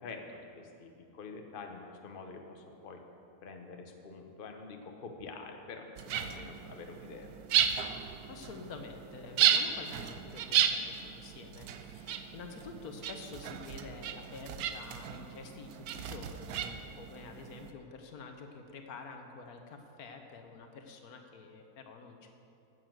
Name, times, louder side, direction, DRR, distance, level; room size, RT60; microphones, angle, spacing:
voice 1, 0.0-3.0 3.4-7.3, left 4 dB, 40° left, 4 dB, 1.0 m, -46 dB
sound 1, 6.0-17.7, right 9 dB, 80° right, 1.1 m, -34 dB
voice 2, 8.0-22.4, left 4 dB, 75° left, 5 dB, 1.4 m, -48 dB
9.8 x 8.1 x 7.5 m, 2.7 s
omnidirectional pair, 1.6 m